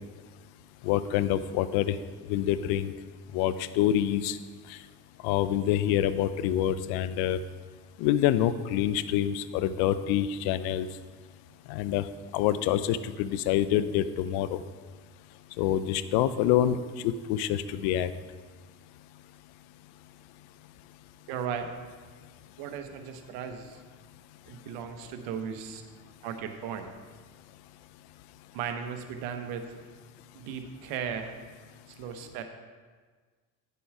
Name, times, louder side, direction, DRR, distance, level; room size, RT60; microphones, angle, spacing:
voice 1, 0.8-1.9 2.3-2.9 3.3-4.4 5.2-7.4 8.0-10.9 11.7-12.0 12.3-14.6 15.6-16.8 17.0-18.1, left 11 dB, 85° left, 14 dB, 0.6 m, -26 dB
voice 2, 21.3-21.7 22.6-23.8 24.5-25.8 26.2-26.9 28.5-29.7 30.3-31.3 31.9-32.4, right 7 dB, 90° right, 7 dB, 1.0 m, -36 dB
10.0 x 6.9 x 4.7 m, 1.5 s
supercardioid pair, 80°, 37 cm